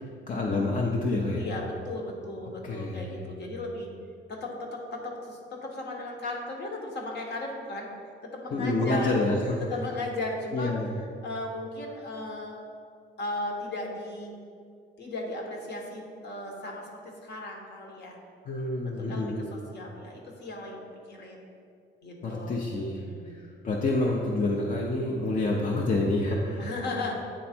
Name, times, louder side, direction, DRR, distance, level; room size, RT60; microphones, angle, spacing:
voice 1, 0.0-1.4 2.6-3.3 8.5-9.6 10.5-10.9 18.5-19.5 22.2-26.7, left 2 dB, 40° left, -1 dB, 0.7 m, -28 dB
voice 2, 1.3-3.9 4.3-7.9 8.2-9.2 9.6-12.6 13.2-14.3 15.0-18.2 18.8-21.5 22.0-23.4 26.6-27.1, left 2 dB, 60° left, 0 dB, 1.2 m, -36 dB
8.5 x 3.2 x 4.3 m, 2.3 s
cardioid pair, 90°, 20 cm